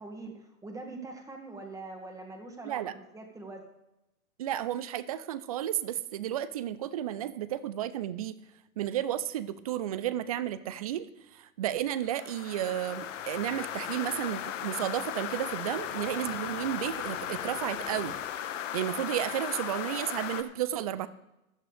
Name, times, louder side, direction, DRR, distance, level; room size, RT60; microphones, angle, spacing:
voice 1, 0.0-3.6, right 3 dB, 5° right, 2 dB, 1.9 m, -43 dB
voice 2, 2.6-2.9 4.4-8.4 8.8-11.1 11.3-18.2 18.7-21.1, right 11 dB, 30° right, 16 dB, 0.4 m, -32 dB
sound 1, 12.0-20.4, left 10 dB, 55° left, 1.2 m, -37 dB
sound 2, 12.6-18.2, left 5 dB, 85° left, 2.8 m, -49 dB
15.0 x 11.5 x 3.4 m, 0.91 s
hypercardioid pair, 125°, 44 cm